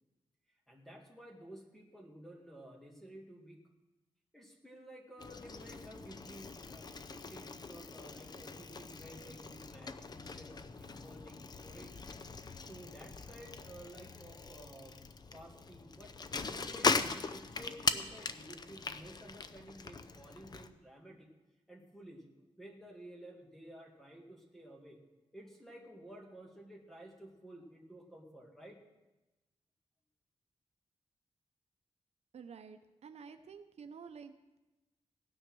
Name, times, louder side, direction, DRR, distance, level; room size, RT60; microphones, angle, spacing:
voice 1, 0.7-3.6 4.3-11.9 12.6-15.0 15.3-16.2 16.5-21.3 21.7-22.3 22.6-25.0 25.3-28.8, right 1 dB, 5° left, 0 dB, 2.3 m, -53 dB
Bicycle, 5.2-20.7, left 4 dB, 35° left, 0.6 m, -40 dB
voice 2, 32.3-34.6, right 6 dB, 70° right, 8 dB, 0.7 m, -51 dB
16.5 x 9.7 x 6.2 m, 1.0 s
wide cardioid pair, 155°, 11 cm